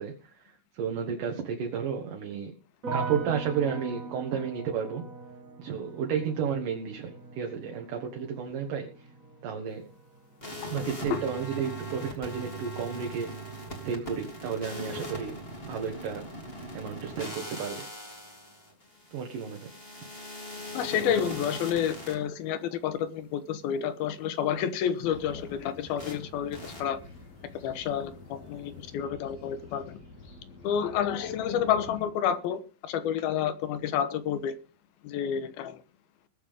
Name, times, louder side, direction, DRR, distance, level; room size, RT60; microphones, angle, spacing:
voice 1, 0.0-2.5 2.9-5.0 5.6-8.9 9.4-9.9 10.7-15.4 15.6-16.3 16.7-17.8 19.1-19.7, right 7 dB, 65° right, 3.1 m, -32 dB
sound 1, 2.8-13.9 14.2-14.9, right 3 dB, 40° right, 1.1 m, -42 dB
sound 2, 10.4-22.1 26.0-26.2 26.5-26.8, equal, 15° left, 3.0 m, -40 dB
voice 2, 20.7-27.0 27.6-30.0 30.6-34.5 35.0-35.8, left 9 dB, 80° left, 3.0 m, -29 dB
sound 3, 25.0-32.0, left 3 dB, 65° left, 9.1 m, -49 dB
21.0 x 8.6 x 3.7 m
omnidirectional pair, 4.3 m